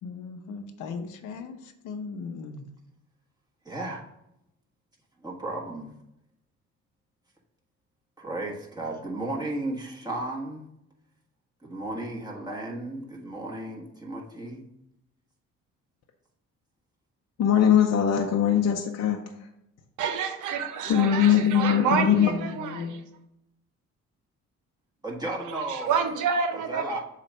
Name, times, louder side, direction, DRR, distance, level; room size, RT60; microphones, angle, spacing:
voice 1, 0.0-2.7 21.7-23.0, left 5 dB, 85° left, 0.9 m, -37 dB
voice 2, 3.6-4.0 5.2-5.9 8.2-10.6 11.6-14.6 25.0-26.0 26.5-27.0, right 2 dB, 15° right, 1.4 m, -34 dB
voice 3, 17.4-19.2 20.9-22.4, left 9 dB, 60° left, 0.7 m, -21 dB
voice 4, 20.0-22.9 25.4-27.0, right 6 dB, 80° right, 0.9 m, -28 dB
7.3 x 2.5 x 5.4 m
cardioid pair, 90°, 30 cm